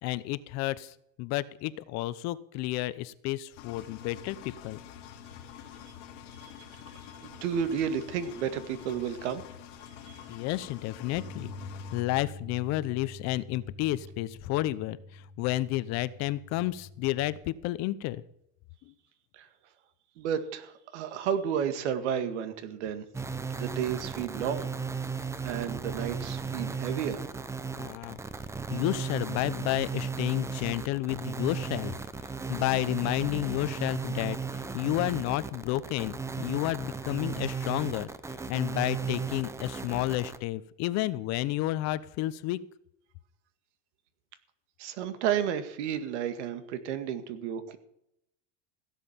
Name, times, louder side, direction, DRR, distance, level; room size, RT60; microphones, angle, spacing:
voice 1, 0.0-4.8 10.3-11.5 11.9-18.2 18.9-19.0 27.7-28.2 28.7-31.9 32.5-38.1 38.5-42.6, left 16 dB, 50° left, 17 dB, 0.8 m, -31 dB
Engine, 3.6-12.0, left 9 dB, 85° left, 2.3 m, -47 dB
voice 2, 7.2-9.4 10.0-10.2 19.3-19.5 20.2-23.1 23.5-24.7 25.4-27.2 44.8-47.8, right 8 dB, 85° right, 10 dB, 2.0 m, -32 dB
Bass guitar, 11.1-17.4, left 2 dB, 35° right, 3.5 m, -46 dB
sound 1, 23.1-40.4, right 5 dB, 10° right, 0.6 m, -35 dB
16.5 x 7.5 x 7.3 m, 0.77 s
supercardioid pair, 140°, 34 cm